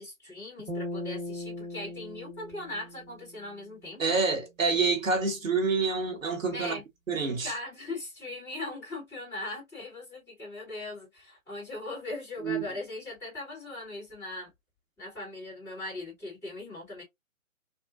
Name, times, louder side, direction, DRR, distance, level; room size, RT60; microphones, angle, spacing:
voice 1, 0.0-4.2 6.5-6.8 7.4-14.5 15.0-17.0, left 2 dB, 5° left, 1.9 m, -39 dB
sound 1, 0.7-4.0, left 1 dB, 10° right, 1.7 m, -39 dB
voice 2, 4.0-6.8 7.1-7.5 12.4-12.6, right 4 dB, 70° right, 1.2 m, -27 dB
3.5 x 2.4 x 2.5 m
figure-of-eight pair, 140°, 41 cm